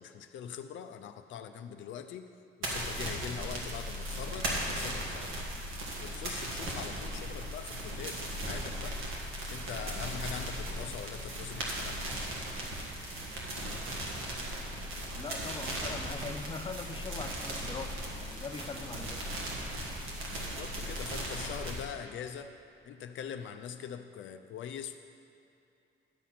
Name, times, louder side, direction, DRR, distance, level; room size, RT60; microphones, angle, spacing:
voice 1, 0.0-2.3 2.6-5.5 6.0-9.0 9.5-12.2 20.3-22.5 22.9-25.0, left 8 dB, 75° left, 8 dB, 0.5 m, -43 dB
sound 1, 2.6-21.8, right 1 dB, 85° right, 1.8 m, -37 dB
voice 2, 15.1-19.3, left 4 dB, 25° left, 6 dB, 0.6 m, -42 dB
11.0 x 4.2 x 7.5 m, 2.7 s
cardioid pair, 90°, 20 cm